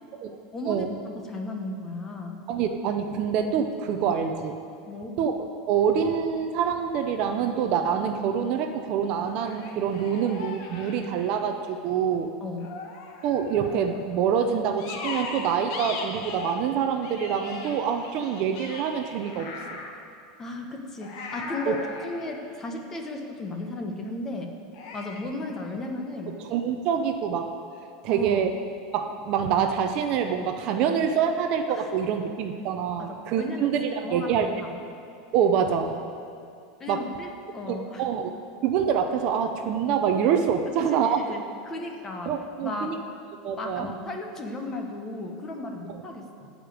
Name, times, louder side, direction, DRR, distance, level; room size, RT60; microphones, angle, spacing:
voice 1, 0.5-2.4 4.9-5.2 12.4-12.7 20.4-21.8 22.0-24.5 24.9-26.4 28.1-28.4 31.7-31.9 33.0-33.7 34.0-34.7 36.8-38.0 40.9-42.3 42.6-42.9 43.6-46.5, left 2 dB, 15° left, 3 dB, 0.9 m, -35 dB
voice 2, 2.5-4.6 5.2-12.3 13.2-19.8 21.7-21.8 26.4-27.5 28.0-28.5 28.9-34.5 35.3-35.9 36.9-37.1 37.7-38.3 38.6-41.4 42.3-43.0 43.4-43.9 45.9-46.0, right 7 dB, 35° right, 6 dB, 0.6 m, -26 dB
sound 1, 7.0-7.3 9.4-11.7 12.6-14.0 14.8-16.7 17.0-20.0 21.0-23.3 24.7-25.2, left 4 dB, 50° left, 1.4 m, -39 dB
12.5 x 5.1 x 9.0 m, 2.6 s
supercardioid pair, 180°, 3 cm